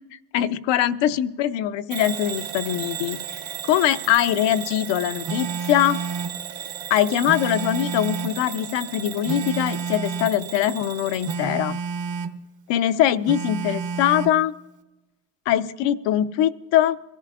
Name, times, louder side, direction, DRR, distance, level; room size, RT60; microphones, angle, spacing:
voice 1, 0.0-6.0 6.9-11.8 12.7-14.5 15.5-17.0, left 11 dB, 60° left, 12 dB, 0.7 m, -22 dB
Bell / Alarm, 1.9-11.4, right 10 dB, 85° right, 1.8 m, -35 dB
Telephone, 5.2-6.4 7.2-8.4 9.2-10.4 11.2-12.4 13.3-14.4, right 5 dB, 35° right, 0.9 m, -30 dB
22.5 x 14.0 x 2.4 m, 1.1 s
supercardioid pair, 90°, 49 cm